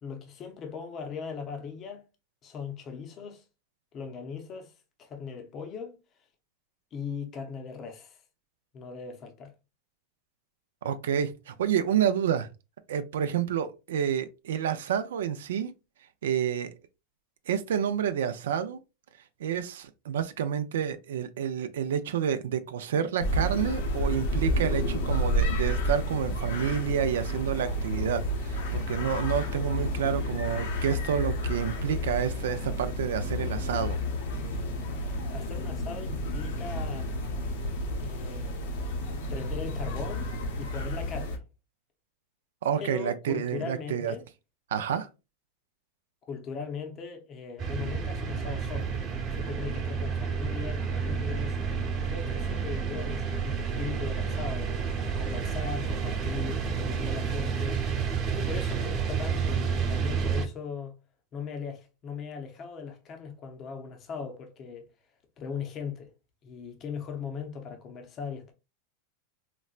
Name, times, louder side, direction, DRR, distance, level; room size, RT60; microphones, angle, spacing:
voice 1, 0.0-2.0 2.4-3.4 3.9-4.7 5.0-6.0 6.9-8.2 8.7-9.5 35.3-37.1 38.0-38.6 39.3-41.4 42.8-44.3 46.3-48.9 49.3-51.6 52.0-54.9 55.2-57.8 58.2-60.9 61.3-64.9 65.4-66.1 66.4-68.5, left 6 dB, 35° left, 0.6 m, -39 dB
voice 2, 10.8-12.5 12.9-15.7 16.2-16.7 17.5-18.8 19.4-34.0 42.6-44.1 44.7-45.1, right 8 dB, 85° right, 0.4 m, -29 dB
sound 1, 23.2-41.4, equal, 75° left, 0.8 m, -31 dB
sound 2, 47.6-60.5, right 6 dB, 35° right, 0.9 m, -30 dB
4.0 x 2.1 x 2.3 m
supercardioid pair, 135°, 0 cm